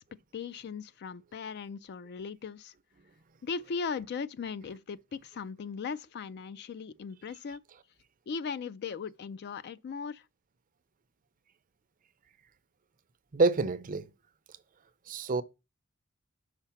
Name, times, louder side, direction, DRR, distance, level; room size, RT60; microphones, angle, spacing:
voice 1, 0.3-2.7 3.4-7.6 8.3-10.2, left 5 dB, 50° left, 0.3 m, -38 dB
voice 2, 13.3-14.1 15.1-15.4, right 3 dB, 40° right, 0.5 m, -27 dB
5.8 x 4.8 x 5.7 m
head